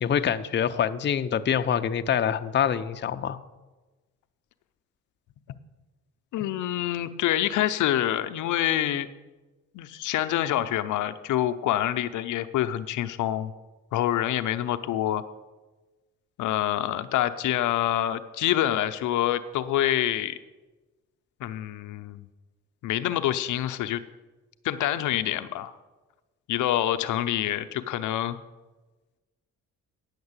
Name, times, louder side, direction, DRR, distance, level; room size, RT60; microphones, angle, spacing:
voice 1, 0.0-3.4, left 8 dB, 35° left, 9 dB, 0.6 m, -25 dB
voice 2, 6.3-9.1 9.7-13.5 13.9-15.2 16.4-20.4 21.4-22.3 22.8-24.0 24.6-25.7 26.5-28.4, left 12 dB, 80° left, 10 dB, 0.6 m, -26 dB
9.5 x 6.6 x 8.1 m, 1.2 s
cardioid pair, 90°, 30 cm